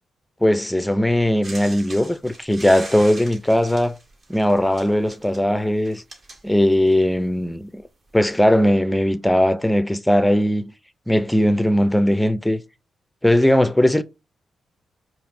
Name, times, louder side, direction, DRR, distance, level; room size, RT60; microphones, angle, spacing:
voice 1, 0.4-4.0 4.3-6.0 6.4-7.8 8.1-10.7 11.1-12.6 13.2-14.0, left 1 dB, 5° left, 0.5 m, -19 dB
sound 1, 1.4-7.1 8.1-8.2, right 2 dB, 45° right, 1.7 m, -41 dB
5.0 x 2.8 x 2.6 m
supercardioid pair, 55°, 0 cm